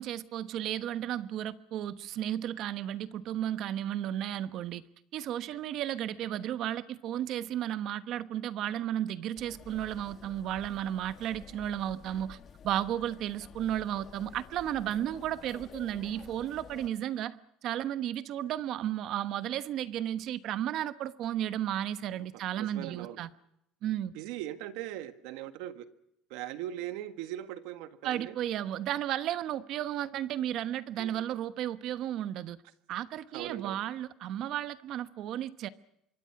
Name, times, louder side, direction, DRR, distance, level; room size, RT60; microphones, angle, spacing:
voice 1, 0.0-4.8 5.1-12.4 12.6-17.4 17.6-23.3 23.8-24.1 28.0-32.6 32.9-35.7, right 11 dB, 50° right, 1.1 m, -33 dB
sound 1, 9.3-16.9, left 7 dB, 30° left, 1.7 m, -51 dB
voice 2, 22.6-23.2 24.1-25.9 26.3-28.3 31.0-31.2 33.3-33.8, right 13 dB, 80° right, 1.7 m, -40 dB
26.0 x 23.0 x 5.9 m
cardioid pair, 160°, 0 cm